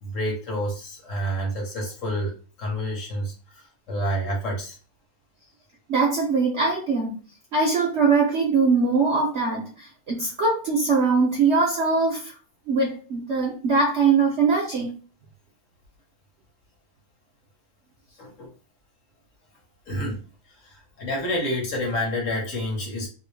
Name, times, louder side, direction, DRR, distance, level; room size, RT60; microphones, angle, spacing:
voice 1, 0.0-4.8 18.2-18.5 19.9-20.2 20.6-23.1, equal, 55° left, 0 dB, 1.1 m, -29 dB
voice 2, 5.9-7.1 7.5-12.3 12.7-14.9, right 4 dB, 60° right, 0 dB, 0.7 m, -22 dB
2.9 x 2.7 x 3.1 m, 0.38 s
omnidirectional pair, 1.8 m